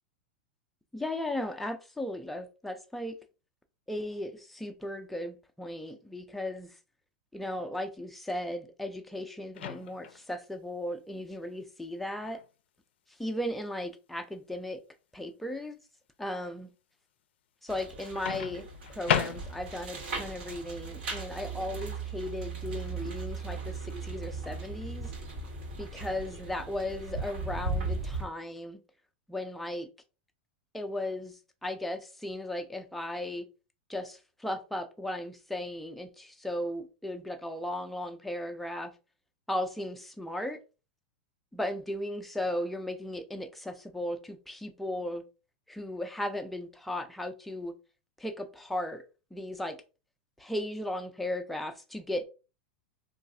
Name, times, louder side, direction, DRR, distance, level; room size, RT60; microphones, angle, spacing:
voice 1, 0.9-3.2 3.9-6.7 7.3-12.4 13.2-14.8 15.1-15.8 16.2-16.7 17.6-18.6 18.9-25.1 25.8-28.8 29.3-29.9 30.7-31.3 31.6-33.5 33.9-38.9 39.5-40.6 41.5-45.2 45.7-47.7 48.2-49.0 49.3-49.8 50.4-52.2, left 1 dB, ahead, 0.3 m, -36 dB
Microwave oven, 9.5-10.2 12.2-12.4 18.3-19.9, left 9 dB, 85° left, 0.4 m, -32 dB
sound 1, 17.7-28.3, right 3 dB, 65° right, 1.1 m, -37 dB
3.1 x 2.3 x 2.6 m
supercardioid pair, 155°, 6 cm